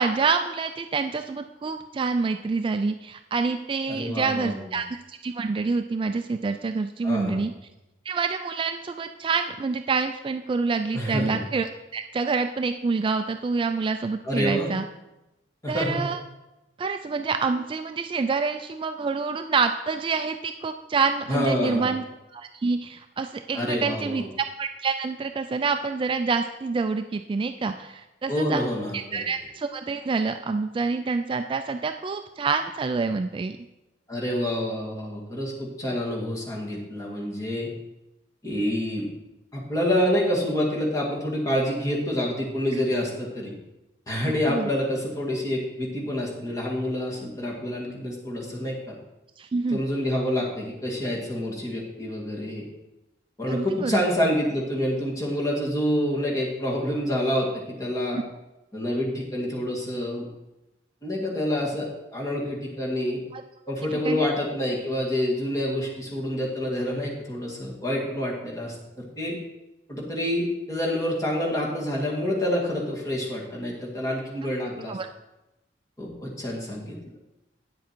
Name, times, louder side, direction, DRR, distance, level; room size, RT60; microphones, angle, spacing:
voice 1, 0.0-7.5 8.1-14.8 15.7-16.2 16.8-22.0 22.3-24.2 24.6-28.7 28.9-33.6 44.2-44.7 49.4-49.8 53.5-54.0 58.1-58.2 63.3-63.4 63.9-64.3 74.9-75.1, right 4 dB, 30° right, 8 dB, 0.3 m, -27 dB
voice 2, 3.9-4.6 7.0-7.5 10.9-11.4 14.2-14.7 15.6-16.1 21.3-21.9 23.5-24.3 28.3-29.2 34.1-37.7 38.4-39.1 39.5-43.5 44.1-49.0 49.7-52.7 53.4-58.2 58.7-60.3 61.0-63.2 63.7-69.4 69.9-75.0 76.0-77.0, left 1 dB, 20° left, -3 dB, 2.1 m, -27 dB
9.3 x 7.4 x 4.4 m, 0.97 s
head